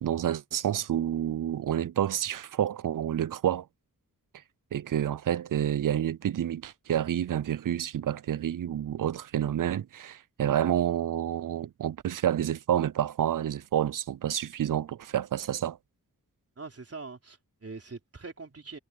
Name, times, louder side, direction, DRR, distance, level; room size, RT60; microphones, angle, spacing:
voice 1, 0.0-3.7 4.7-15.8, right 10 dB, 60° right, 0.5 m, -29 dB
voice 2, 16.6-18.8, right 4 dB, 40° right, 3.7 m, -43 dB
wide cardioid pair, 95°, 37 cm